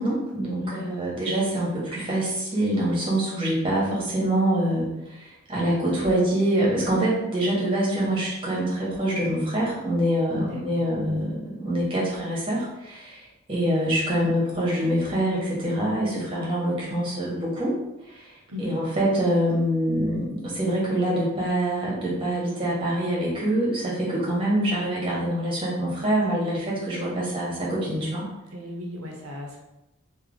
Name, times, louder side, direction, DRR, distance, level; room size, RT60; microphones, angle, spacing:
voice 1, 0.0-13.2 13.5-17.7 18.1-28.3, right 1 dB, 25° right, -6 dB, 1.3 m, -25 dB
voice 2, 10.3-10.8 18.5-18.8 28.5-29.6, left 2 dB, 70° right, 0 dB, 0.9 m, -36 dB
3.3 x 2.9 x 3.8 m, 0.92 s
head